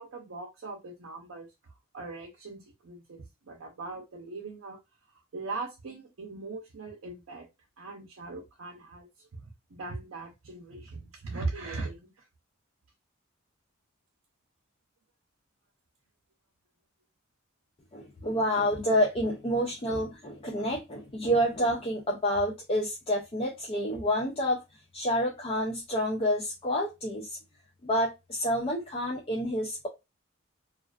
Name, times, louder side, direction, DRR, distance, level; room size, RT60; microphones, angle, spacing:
voice 1, 0.0-1.5 1.9-4.8 5.1-7.5 7.8-12.3, right 3 dB, 80° right, 0.6 m, -40 dB
voice 2, 17.9-24.6 24.9-27.4 27.8-29.9, equal, 30° left, 0.4 m, -28 dB
2.4 x 2.3 x 2.3 m
head